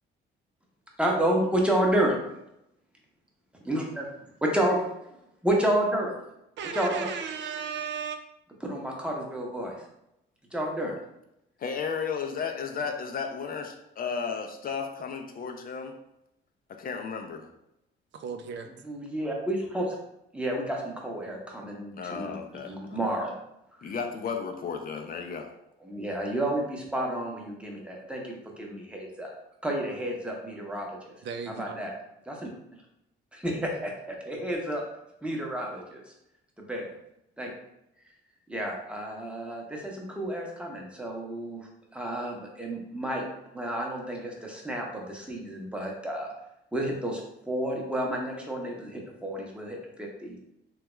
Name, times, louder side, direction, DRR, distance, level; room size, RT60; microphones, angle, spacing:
voice 1, 1.0-2.2 3.6-4.1 4.4-4.8 5.4-6.1 6.7-7.1 8.6-9.8 10.5-11.0 18.8-20.0 20.3-22.4 22.6-23.3 25.8-29.3 29.6-31.1 31.5-31.9 32.3-32.8 33.3-34.8 35.2-36.1 36.6-37.0 37.4-37.5 38.5-43.2 43.5-46.3 46.7-50.4, right 1 dB, 5° right, -1 dB, 0.8 m, -30 dB
voice 2, 6.6-8.2 18.1-18.7 31.2-31.8, right 6 dB, 65° right, 7 dB, 0.4 m, -35 dB
voice 3, 11.6-15.9 16.7-17.5 22.0-23.0 23.8-25.5, left 6 dB, 45° left, 4 dB, 0.5 m, -34 dB
3.3 x 2.3 x 3.0 m, 0.84 s
cardioid pair, 90°, 20 cm